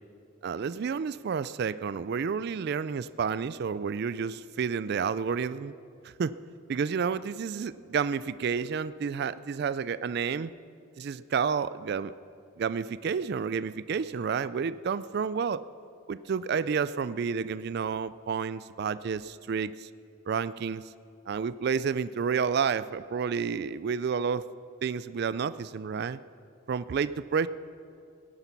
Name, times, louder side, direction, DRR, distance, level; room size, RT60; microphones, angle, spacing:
voice 1, 0.4-5.7 6.0-6.3 6.7-10.5 11.0-12.1 12.6-15.6 16.1-19.9 20.3-20.8 21.3-24.5 24.8-26.2 26.7-27.5, right 6 dB, 55° right, 16 dB, 0.3 m, -30 dB
18.5 x 11.0 x 5.9 m, 2.5 s
head